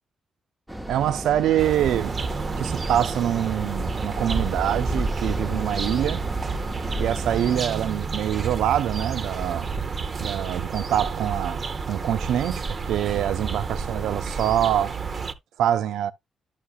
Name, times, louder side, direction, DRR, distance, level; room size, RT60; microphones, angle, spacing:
sound 1, 0.7-7.6, right 1 dB, 5° right, 0.7 m, -32 dB
voice 1, 0.9-2.2 2.6-6.2 7.0-9.7 10.2-14.9 15.6-16.1, right 11 dB, 90° right, 0.3 m, -25 dB
sound 2, 1.6-15.3, right 5 dB, 40° right, 0.6 m, -31 dB
11.5 x 5.7 x 2.3 m
cardioid pair, 110°, 0 cm